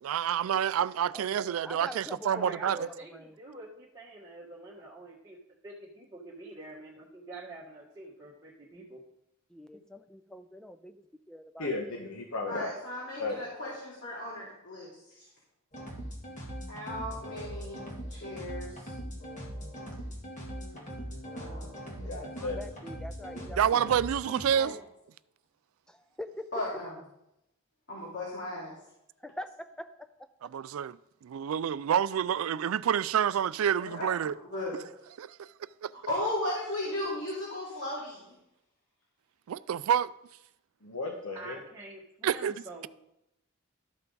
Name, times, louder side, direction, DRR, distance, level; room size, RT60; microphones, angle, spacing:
voice 1, 0.0-2.9 23.6-24.8 30.5-31.0 31.2-34.3 34.7-34.8 35.2-35.5 35.8-35.9 39.5-40.1 42.2-42.5, right 9 dB, 80° right, 0.3 m, -28 dB
voice 2, 1.1-3.3 9.5-11.0 11.3-11.7 22.2-23.8 25.9-26.5 29.2-30.1, left 1 dB, 5° left, 0.5 m, -44 dB
voice 3, 2.3-5.3 5.6-9.0 41.3-42.9, right 2 dB, 15° right, 1.5 m, -46 dB
voice 4, 11.6-12.7 13.2-13.7 22.0-22.6 40.8-41.6, left 3 dB, 90° left, 1.1 m, -35 dB
voice 5, 12.5-14.9 15.1-15.3 16.7-17.8 18.1-18.9 21.3-21.7 22.0-22.2 24.5-24.7 26.5-26.9 27.9-28.7 33.8-34.2 34.5-34.8 36.1-38.3, left 1 dB, 60° left, 2.7 m, -36 dB
sound 1, 15.7-24.5, equal, 35° left, 1.9 m, -41 dB
12.5 x 5.7 x 3.9 m
head